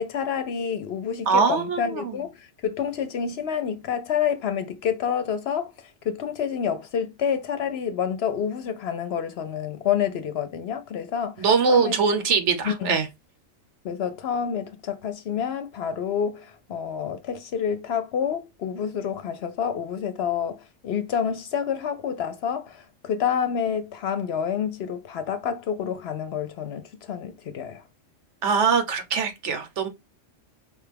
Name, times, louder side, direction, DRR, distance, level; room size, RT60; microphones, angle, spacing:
voice 1, 0.0-5.7 6.0-11.9 12.6-12.9 13.8-27.8, left 7 dB, 65° left, 0.8 m, -28 dB
voice 2, 1.3-2.1 11.4-13.1 28.4-29.9, right 5 dB, 70° right, 1.1 m, -22 dB
4.9 x 2.3 x 3.3 m
omnidirectional pair, 1.3 m